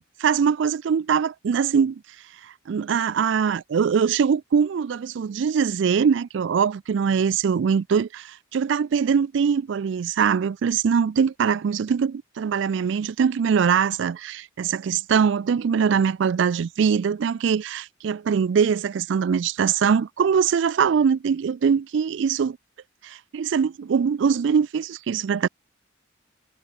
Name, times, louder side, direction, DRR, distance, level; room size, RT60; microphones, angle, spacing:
voice 1, 0.2-2.0 2.4-22.6 23.0-25.5, right 6 dB, 65° right, 0.3 m, -22 dB
head